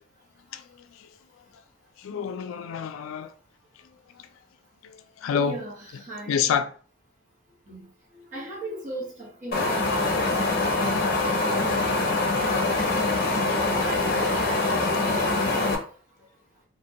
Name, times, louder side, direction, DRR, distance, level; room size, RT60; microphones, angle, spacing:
voice 1, 2.0-3.3 4.8-5.6 6.3-6.7 12.9-13.0, left 7 dB, 85° left, 0.3 m, -28 dB
voice 2, 5.4-6.4 7.7-7.8 8.3-11.0 11.4-12.1 12.4-15.8, right 1 dB, 35° right, 1.0 m, -38 dB
Wind, 9.5-15.8, left 2 dB, 50° left, 0.6 m, -24 dB
3.2 x 2.1 x 2.7 m
head